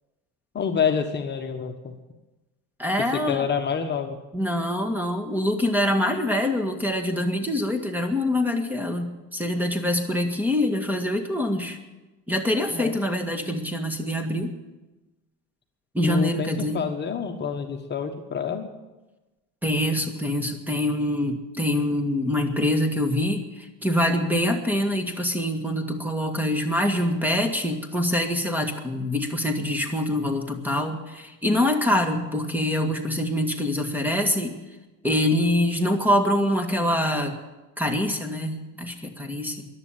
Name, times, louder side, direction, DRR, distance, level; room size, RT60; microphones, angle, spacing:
voice 1, 0.5-1.9 3.1-4.2 12.7-12.9 16.0-18.7, left 7 dB, 35° left, 5 dB, 1.3 m, -27 dB
voice 2, 2.8-3.5 4.3-11.8 12.3-14.6 15.9-16.9 19.6-34.6 35.0-37.4 37.8-39.7, left 1 dB, 5° right, 5 dB, 1.9 m, -25 dB
14.5 x 11.0 x 8.9 m, 1.1 s
cardioid pair, 125°, 32 cm